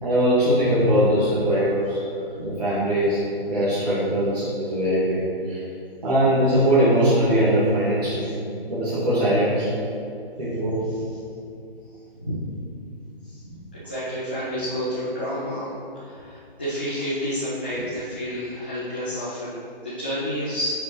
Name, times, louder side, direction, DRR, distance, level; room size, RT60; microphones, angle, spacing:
voice 1, 0.0-2.0 2.4-3.2 3.5-5.6 6.0-8.3 8.7-9.7 10.4-10.8, equal, 45° right, -9 dB, 1.6 m, -21 dB
voice 2, 13.7-15.7 16.0-20.8, equal, 10° left, -13 dB, 0.4 m, -29 dB
9.1 x 4.8 x 3.0 m, 2.5 s
figure-of-eight pair, 155°, 30 cm